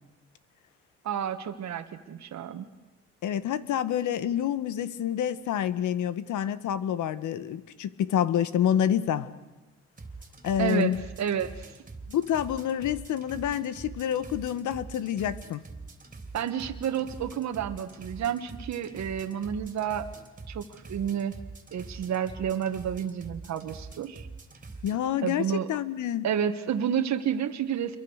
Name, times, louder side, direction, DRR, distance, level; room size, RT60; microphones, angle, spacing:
voice 1, 1.0-2.7 10.6-10.9 11.2-11.7 16.3-20.1 20.5-21.3 21.7-24.3 25.2-25.7 26.2-28.0, right 8 dB, 65° right, 6 dB, 1.7 m, -30 dB
voice 2, 3.2-9.4 10.4-11.0 12.1-15.6 24.8-26.3, left 10 dB, 80° left, 14 dB, 1.5 m, -28 dB
sound 1, 9.9-25.0, right 3 dB, 25° right, 3.4 m, -44 dB
28.0 x 23.0 x 6.5 m, 1.1 s
cardioid pair, 90°, 30 cm